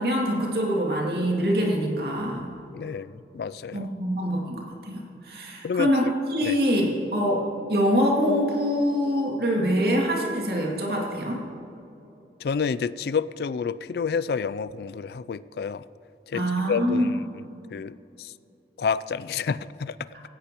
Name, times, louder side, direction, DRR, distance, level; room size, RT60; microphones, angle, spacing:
voice 1, 0.0-2.5 3.7-6.0 6.3-11.4 16.3-17.1, equal, 60° right, -2 dB, 2.5 m, -24 dB
voice 2, 2.7-3.9 5.6-6.1 6.4-6.6 12.4-15.8 16.3-18.3 18.8-20.0, left 6 dB, 65° left, 17 dB, 0.3 m, -29 dB
16.5 x 16.0 x 3.0 m, 2.8 s
head